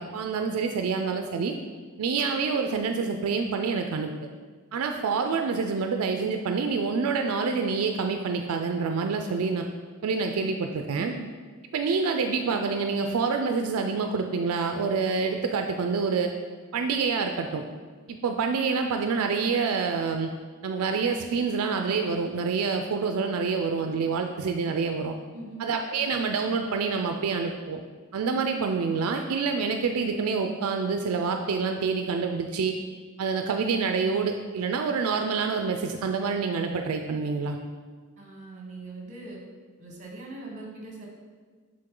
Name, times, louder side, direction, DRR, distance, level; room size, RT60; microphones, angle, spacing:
voice 1, 0.0-1.6 2.0-4.1 4.7-9.7 10.0-11.1 11.7-16.3 16.7-17.6 18.1-20.3 20.6-25.2 25.6-27.8 28.1-32.8 33.2-37.6, right 5 dB, 80° right, 5 dB, 0.4 m, -27 dB
voice 2, 10.9-11.2 25.3-25.7 38.2-39.4 39.8-41.1, right 2 dB, 35° right, -1 dB, 1.2 m, -41 dB
6.7 x 3.8 x 3.7 m, 1.5 s
head